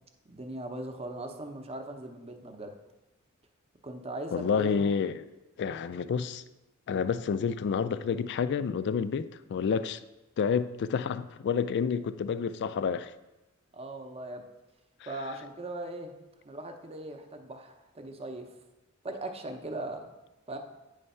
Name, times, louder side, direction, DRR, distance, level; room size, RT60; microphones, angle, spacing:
voice 1, 0.2-2.7 3.8-4.8 13.7-14.4 15.1-16.1 16.4-18.5 19.0-20.1 20.5-20.6, right 1 dB, 25° right, 0.7 m, -39 dB
voice 2, 4.3-5.2 5.6-6.4 6.9-10.0 10.4-13.1, left 6 dB, 55° left, 0.3 m, -29 dB
9.1 x 3.3 x 5.5 m
head